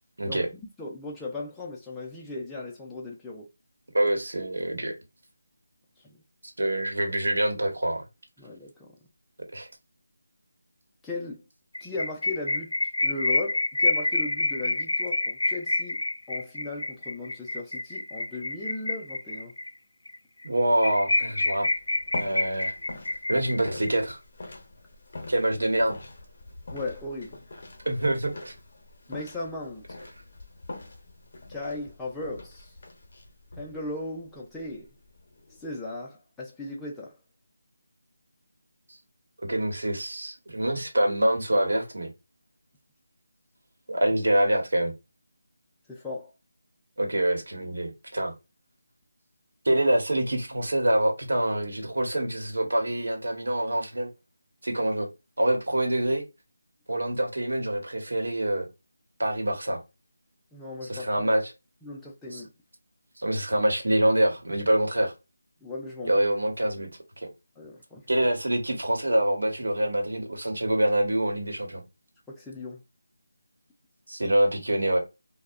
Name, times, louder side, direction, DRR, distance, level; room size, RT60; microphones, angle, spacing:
voice 1, 0.8-3.5 6.0-6.2 8.4-8.9 11.0-11.4 11.8-12.7 13.0-16.0 16.3-19.5 26.7-27.4 29.1-30.0 31.5-32.7 33.6-34.9 35.6-37.2 45.9-46.3 60.5-61.3 61.8-62.5 65.6-66.2 67.6-68.3 72.3-72.8, left 2 dB, 5° left, 0.3 m, -37 dB
voice 2, 3.9-4.9 6.6-8.0 9.5-9.7 20.4-21.7 22.1-22.7 23.3-24.2 25.3-26.0 27.8-28.5 39.4-42.1 43.9-44.9 47.0-48.3 49.6-54.1 54.6-55.1 55.4-56.2 56.9-58.7 59.2-59.8 60.9-61.5 62.3-62.4 63.2-65.1 66.0-66.9 68.1-71.8 74.1-75.0, right 1 dB, 85° right, 0.9 m, -25 dB
sound 1, 11.7-19.7 20.1-20.2 20.4-20.5 20.8-23.9, left 2 dB, 85° left, 0.4 m, -27 dB
sound 2, 21.7-35.7, left 2 dB, 40° left, 0.6 m, -44 dB
2.6 x 2.0 x 2.3 m
figure-of-eight pair, 175°, 0 cm